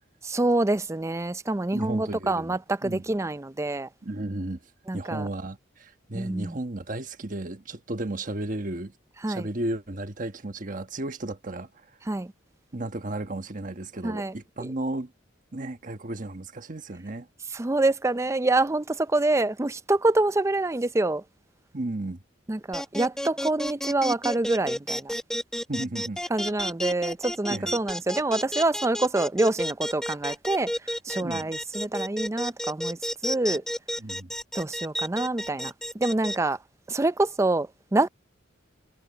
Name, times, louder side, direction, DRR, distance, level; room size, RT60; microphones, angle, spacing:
voice 1, 0.2-3.9 4.9-5.3 6.1-6.6 9.2-9.5 12.1-12.3 14.0-14.3 17.5-21.2 22.5-25.1 26.3-30.7 31.0-33.6 34.5-36.6 36.9-38.1, right 2 dB, 15° right, 0.4 m, -26 dB
voice 2, 1.7-3.0 4.0-4.6 4.9-8.9 9.3-11.9 12.7-15.1 15.5-17.3 21.7-22.2 25.7-26.2 27.5-27.7 31.2-31.5 34.0-34.3, right 1 dB, 45° right, 1.2 m, -34 dB
sound 1, 22.7-36.4, equal, 5° left, 0.9 m, -31 dB
head